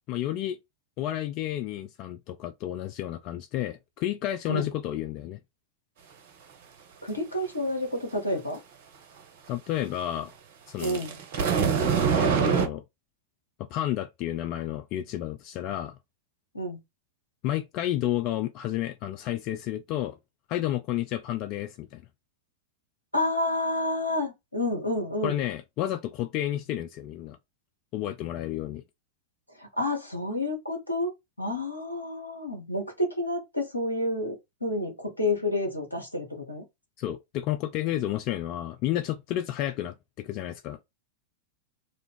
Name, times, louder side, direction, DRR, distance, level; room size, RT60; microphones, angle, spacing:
voice 1, 0.1-0.6 1.0-5.4 9.5-10.3 10.7-11.0 12.1-12.8 13.6-15.9 17.4-20.2 20.5-22.0 25.2-27.4 27.9-28.8 37.0-40.8, left 13 dB, 40° left, 0.3 m, -31 dB
voice 2, 7.0-8.6 10.8-11.2 16.5-16.8 23.1-25.4 29.6-31.1 31.4-36.7, left 1 dB, 85° left, 1.0 m, -29 dB
sound 1, 10.8-12.7, right 6 dB, 50° right, 0.7 m, -24 dB
2.5 x 2.4 x 3.5 m
figure-of-eight pair, 90°, 0 cm